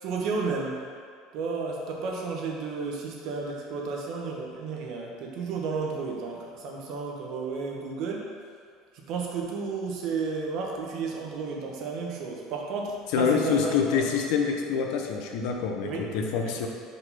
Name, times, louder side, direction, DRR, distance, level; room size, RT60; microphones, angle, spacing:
voice 1, 0.0-0.9 1.3-8.3 8.9-14.0 15.8-16.0 16.4-16.5, right 4 dB, 55° right, -1 dB, 1.1 m, -32 dB
voice 2, 13.1-16.7, left 6 dB, 70° left, 2 dB, 0.8 m, -26 dB
5.2 x 4.2 x 5.7 m, 2.1 s
cardioid pair, 150°, 0 cm